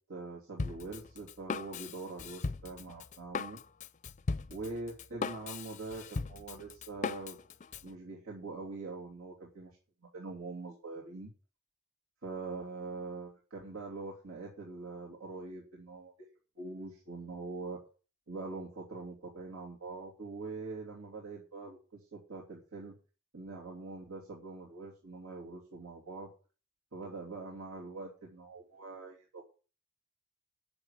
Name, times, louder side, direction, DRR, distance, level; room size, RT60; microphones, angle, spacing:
voice 1, 0.1-3.6 4.5-7.4 7.8-9.7 10.1-11.3 12.2-16.1 16.6-17.8 18.3-22.9 23.3-26.3 26.9-29.4, right 3 dB, 85° right, -4 dB, 3.1 m, -43 dB
Drum kit, 0.6-7.9, left 4 dB, 35° left, 0.5 m, -38 dB
8.8 x 6.8 x 8.2 m, 0.36 s
head